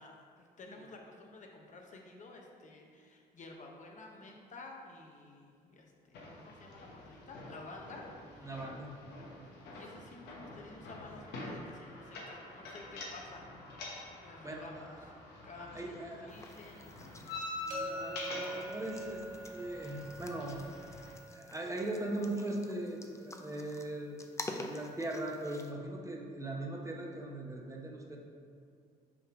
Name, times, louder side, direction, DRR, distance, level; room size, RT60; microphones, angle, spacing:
voice 1, 0.0-8.5 9.7-13.5 14.2-15.1 15.4-17.3, left 3 dB, 45° left, 1 dB, 0.9 m, -52 dB
sound 1, 6.1-21.1, left 2 dB, 80° left, 1.1 m, -46 dB
voice 2, 8.4-9.2 14.4-16.3 17.3-19.2 19.5-20.7 21.3-24.2 24.6-28.2, right 1 dB, 20° right, 0 dB, 0.9 m, -40 dB
sound 2, 16.3-25.7, left 2 dB, 15° left, 0.5 m, -49 dB
sound 3, 17.7-23.5, right 2 dB, 50° right, 1.4 m, -46 dB
6.1 x 3.2 x 5.1 m, 2.3 s
supercardioid pair, 70°, 17 cm